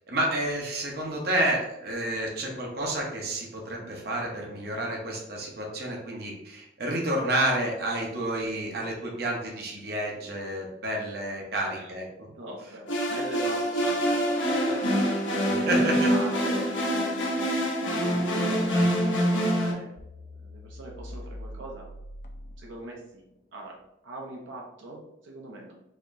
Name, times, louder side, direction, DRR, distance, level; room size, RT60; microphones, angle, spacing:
voice 1, 0.1-12.0 15.6-16.0 17.5-17.6 18.7-18.9, right 1 dB, 55° right, -1 dB, 0.8 m, -30 dB
voice 2, 11.5-11.9 12.3-14.9 15.3-17.5 18.0-18.7 19.0-21.9 22.6-23.8 24.0-25.7, right 1 dB, 85° right, -1 dB, 0.7 m, -41 dB
sound 1, 12.9-19.7, equal, 85° left, 0.9 m, -25 dB
sound 2, 20.0-23.2, equal, 45° left, 0.4 m, -43 dB
4.1 x 3.0 x 2.6 m, 0.86 s
head